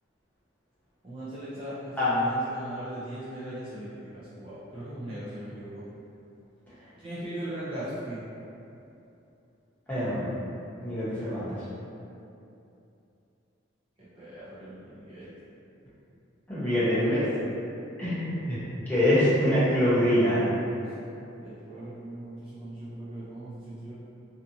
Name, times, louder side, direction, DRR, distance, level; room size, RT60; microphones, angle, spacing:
voice 1, 1.0-5.8 7.0-8.2 14.0-15.3 21.4-23.9, right 1 dB, 25° right, -11 dB, 0.4 m, -39 dB
voice 2, 9.9-10.3 10.8-11.6 16.5-17.2 18.0-18.6 18.9-20.4, left 1 dB, 10° left, -13 dB, 0.9 m, -24 dB
2.7 x 2.4 x 2.6 m, 2.8 s
head